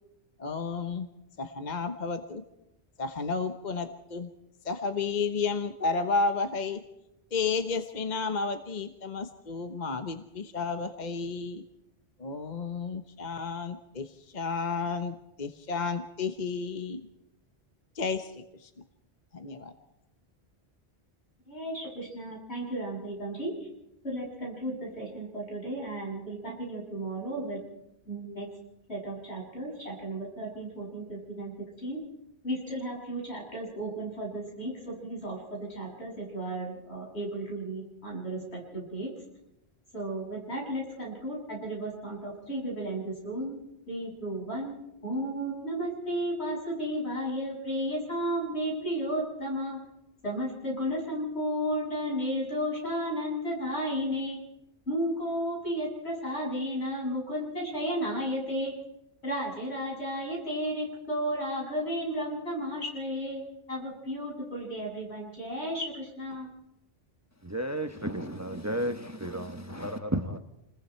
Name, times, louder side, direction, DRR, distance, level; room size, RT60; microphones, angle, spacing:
voice 1, 0.4-1.1 1.4-2.4 3.0-4.3 4.6-6.8 7.3-11.6 12.2-17.0 17.9-18.7 19.3-19.7, left 4 dB, 45° left, 1.2 m, -32 dB
voice 2, 21.5-23.7 24.0-27.6 28.1-28.5 28.9-31.5 31.8-32.0 32.4-39.1 39.9-43.6 43.9-49.8 50.2-54.4 54.9-58.8 59.2-66.5, equal, 80° left, 7.9 m, -33 dB
voice 3, 67.4-70.4, right 1 dB, 15° right, 1.0 m, -33 dB
28.5 x 21.0 x 4.5 m
omnidirectional pair, 1.1 m